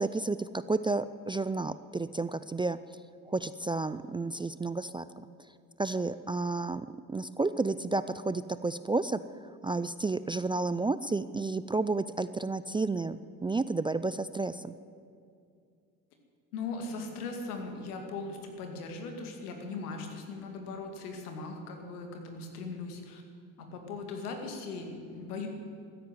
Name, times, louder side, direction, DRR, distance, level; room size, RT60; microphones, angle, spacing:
voice 1, 0.0-2.8 3.3-5.3 5.8-9.2 9.6-14.8, right 3 dB, 10° right, 14 dB, 0.3 m, -31 dB
voice 2, 16.5-23.2 23.6-25.5, left 3 dB, 85° left, 4 dB, 2.3 m, -39 dB
14.0 x 10.0 x 9.4 m, 2.4 s
hypercardioid pair, 65°, 44 cm